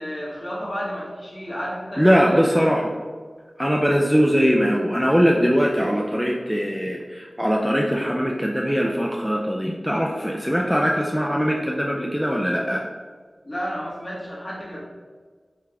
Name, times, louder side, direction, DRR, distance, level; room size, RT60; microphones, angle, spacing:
voice 1, 0.0-2.6 13.4-14.8, equal, 45° left, -6 dB, 1.3 m, -32 dB
voice 2, 2.0-2.9 3.6-12.8, equal, ahead, -1 dB, 0.3 m, -21 dB
3.7 x 3.3 x 3.3 m, 1.5 s
wide cardioid pair, 65°, 0 cm